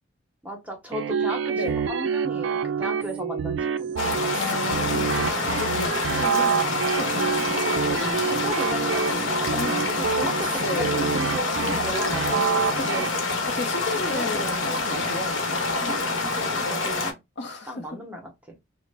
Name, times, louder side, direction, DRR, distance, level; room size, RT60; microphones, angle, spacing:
voice 1, 0.4-4.1 7.5-9.6 9.9-12.9 14.1-14.2 16.3-17.2 17.7-18.6, right 1 dB, 10° right, 0.7 m, -36 dB
sound 1, 0.9-13.1, right 7 dB, 75° right, 0.3 m, -27 dB
sound 2, 4.0-17.1, left 3 dB, 85° left, 0.9 m, -26 dB
voice 2, 4.3-6.6 6.9-7.2 9.5-9.8 10.6-10.9 12.8-16.0 17.4-17.9, left 2 dB, 60° left, 0.6 m, -34 dB
3.2 x 2.0 x 3.3 m
head